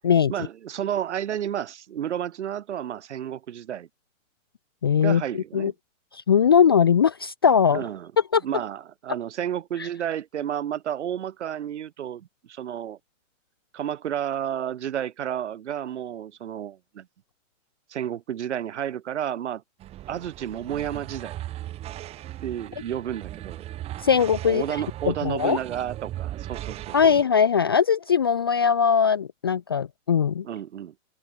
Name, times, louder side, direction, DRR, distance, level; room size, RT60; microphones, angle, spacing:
voice 1, 0.3-3.9 5.0-5.7 7.7-8.1 8.4-13.0 13.7-17.1 17.9-19.6 20.1-21.4 22.4-23.6 24.5-27.0 30.4-30.9, right 10 dB, 60° right, 5.5 m, -31 dB
voice 2, 4.8-5.2 5.5-5.7 6.3-7.8 8.3-8.4 24.0-24.6 25.1-25.6 26.9-30.4, left 7 dB, 20° left, 0.5 m, -20 dB
sound 1, 19.8-27.2, right 13 dB, 15° right, 4.6 m, -37 dB
open air
hypercardioid pair, 175°, 39 cm